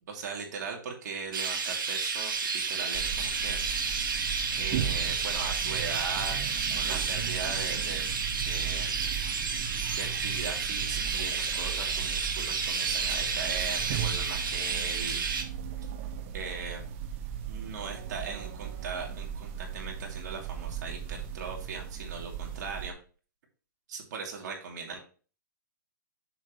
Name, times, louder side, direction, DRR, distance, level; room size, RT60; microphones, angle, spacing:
voice 1, 0.1-2.3 2.7-3.6 4.0-4.2 4.5-6.4 6.7-8.1 8.4-8.9 9.9-15.2 16.3-16.8 17.5-22.9 23.9-25.0, right 5 dB, 60° right, 1 dB, 2.8 m, -39 dB
Chirp tweet, 1.3-15.4, right 5 dB, 85° right, 1.8 m, -31 dB
sound 1, 2.9-22.9, right 8 dB, 40° right, 1.0 m, -37 dB
7.1 x 7.1 x 3.1 m, 0.37 s
hypercardioid pair, 145°, 11 cm